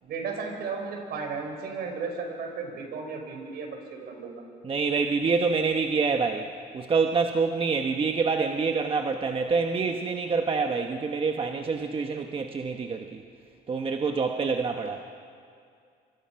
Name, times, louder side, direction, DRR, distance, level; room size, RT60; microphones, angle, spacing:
voice 1, 0.0-4.4, right 5 dB, 70° right, 3 dB, 5.2 m, -34 dB
voice 2, 4.6-13.2 13.7-15.0, right 4 dB, 30° right, 4 dB, 1.2 m, -26 dB
26.5 x 25.5 x 5.8 m, 2.3 s
cardioid pair, 110°, 17 cm